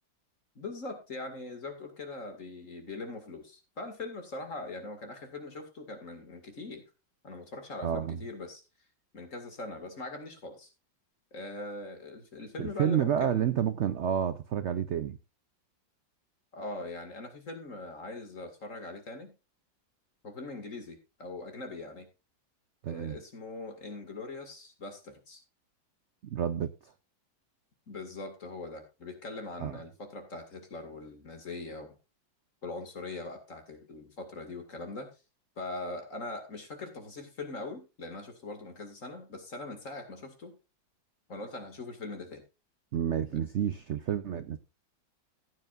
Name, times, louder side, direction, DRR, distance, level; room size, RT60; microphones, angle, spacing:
voice 1, 0.6-6.8 7.2-8.6 9.1-10.7 11.3-13.5 16.5-19.3 20.2-22.1 22.9-25.4 27.9-32.0 32.6-35.1 35.6-40.6 41.3-42.4 43.3-43.4, left 2 dB, 45° left, 2.5 m, -41 dB
voice 2, 7.8-8.2 12.6-15.2 22.8-23.2 26.3-26.9 29.6-29.8 42.9-44.6, right 9 dB, 90° right, 0.6 m, -30 dB
15.5 x 9.1 x 2.5 m
omnidirectional pair, 2.0 m